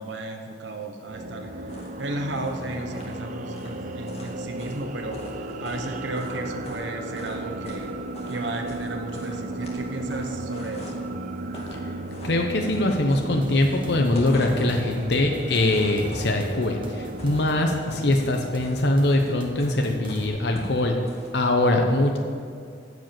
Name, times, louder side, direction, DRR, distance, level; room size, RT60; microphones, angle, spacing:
voice 1, 0.0-1.5 2.0-8.0 8.3-11.1, right 2 dB, 75° right, 4 dB, 1.0 m, -34 dB
sound 1, 1.0-18.3, right 1 dB, 45° right, 0.5 m, -35 dB
sound 2, 1.7-6.9 7.1-7.9 8.1-11.1 11.4-11.8 12.0-13.7 14.0-14.8 15.3-16.5 16.9-21.3, left 1 dB, 35° left, 2.0 m, -42 dB
voice 2, 12.2-20.9 21.3-22.2, left 1 dB, 65° left, 2 dB, 0.9 m, -22 dB
sound 3, 13.4-20.3, right 1 dB, 25° right, 1.3 m, -43 dB
15.0 x 5.1 x 7.6 m, 2.3 s
head